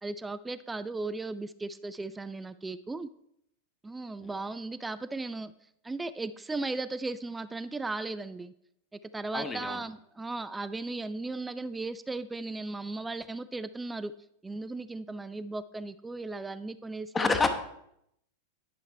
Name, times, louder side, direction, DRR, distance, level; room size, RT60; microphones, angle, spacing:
voice 1, 0.0-3.1 3.8-5.5 5.8-8.5 9.1-14.1 14.4-17.4, right 3 dB, 10° right, 13 dB, 0.3 m, -36 dB
voice 2, 9.3-9.8 17.1-17.5, left 4 dB, 15° left, 7 dB, 0.9 m, -27 dB
10.0 x 5.7 x 4.4 m, 0.75 s
figure-of-eight pair, 90°, 0 cm